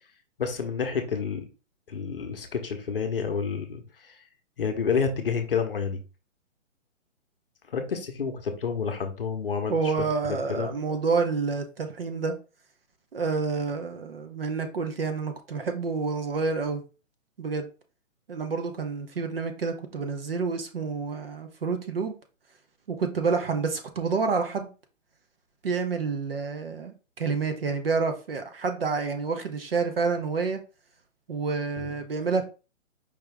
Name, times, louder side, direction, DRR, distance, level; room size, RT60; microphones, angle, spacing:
voice 1, 0.4-1.5 1.9-4.1 4.6-6.0 7.7-9.7 10.3-10.7 31.8-31.9, left 6 dB, 45° left, 5 dB, 0.8 m, -29 dB
voice 2, 9.7-12.3 13.1-16.8 17.4-17.7 18.3-22.1 22.9-24.7 25.6-30.6 31.3-32.4, right 4 dB, 45° right, 6 dB, 0.7 m, -28 dB
5.0 x 2.8 x 3.3 m, 0.32 s
hypercardioid pair, 175°, 39 cm